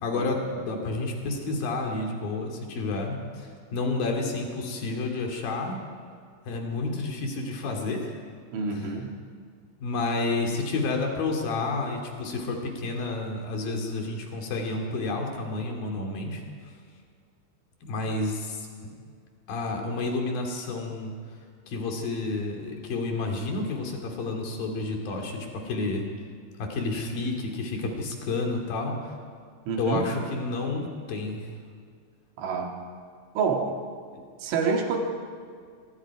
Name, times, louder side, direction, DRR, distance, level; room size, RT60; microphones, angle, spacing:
voice 1, 0.0-5.8 6.5-8.2 8.7-8.9 9.8-16.4 17.8-18.7 19.5-21.2 21.7-26.1 26.6-29.1 29.8-31.5, left 3 dB, 50° left, 2 dB, 3.7 m, -30 dB
voice 2, 8.5-9.1 29.7-30.0 32.4-32.7 33.4-33.7 34.4-35.0, right 5 dB, 70° right, 1 dB, 4.4 m, -27 dB
25.5 x 22.0 x 4.9 m, 2.1 s
omnidirectional pair, 6.0 m